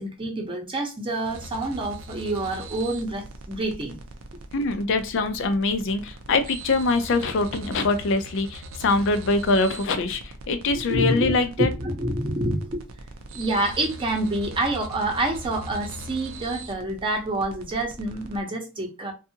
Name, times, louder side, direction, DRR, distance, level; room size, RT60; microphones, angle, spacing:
voice 1, 0.0-4.0 10.9-12.8 13.3-19.1, right 1 dB, 25° right, 0.7 m, -27 dB
sound 1, 1.2-18.4, right 1 dB, 85° right, 0.5 m, -41 dB
voice 2, 4.5-11.7, left 3 dB, 65° left, 0.4 m, -23 dB
2.6 x 2.3 x 2.7 m
head